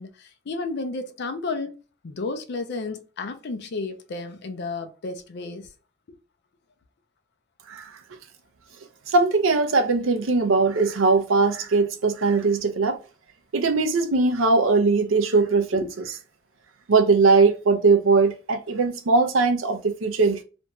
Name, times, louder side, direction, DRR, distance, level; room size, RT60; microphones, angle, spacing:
voice 1, 0.0-1.7 2.0-5.7 15.7-15.9, left 3 dB, 60° left, 0.5 m, -32 dB
voice 2, 9.1-13.0 13.5-15.9 16.9-20.4, right 4 dB, 80° right, 0.5 m, -20 dB
2.5 x 2.2 x 2.9 m
head